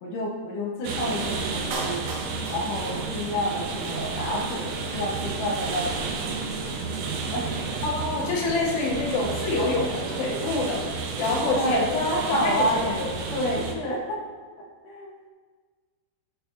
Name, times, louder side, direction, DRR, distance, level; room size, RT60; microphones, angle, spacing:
voice 1, 0.0-6.4 7.3-7.5 11.5-14.2 14.6-15.1, equal, 65° left, -2 dB, 2.4 m, -29 dB
sound 1, 0.8-13.7, right 4 dB, 90° right, 1.6 m, -31 dB
Clapping, 1.7-3.7 4.0-4.1, right 2 dB, 60° right, 1.7 m, -36 dB
voice 2, 7.8-11.9 12.3-12.7, left 3 dB, 85° left, -2 dB, 3.5 m, -26 dB
13.0 x 6.6 x 2.6 m, 1.5 s
omnidirectional pair, 4.7 m